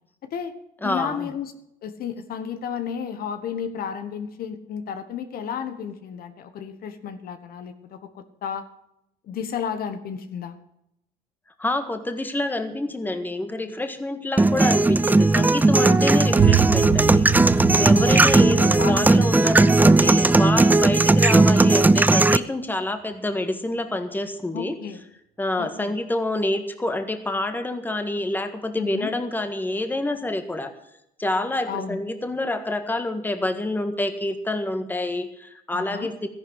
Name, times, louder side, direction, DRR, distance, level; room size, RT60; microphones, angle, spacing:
voice 1, 0.2-0.5 0.8-1.5 1.8-8.6 9.3-10.6 15.9-16.2 17.9-18.2 18.8-19.4 24.5-25.0 25.6-26.0 28.8-29.1 31.7-32.0 35.7-36.1, left 7 dB, 60° left, 10 dB, 1.3 m, -32 dB
voice 2, 0.8-1.3 11.6-24.8 25.4-30.7 31.2-36.3, left 2 dB, 10° left, 8 dB, 1.6 m, -27 dB
sound 1, 14.4-22.4, right 2 dB, 10° right, 0.4 m, -17 dB
sound 2, 16.4-22.0, right 14 dB, 60° right, 0.5 m, -27 dB
13.5 x 11.0 x 6.3 m, 0.81 s
cardioid pair, 110°, 17 cm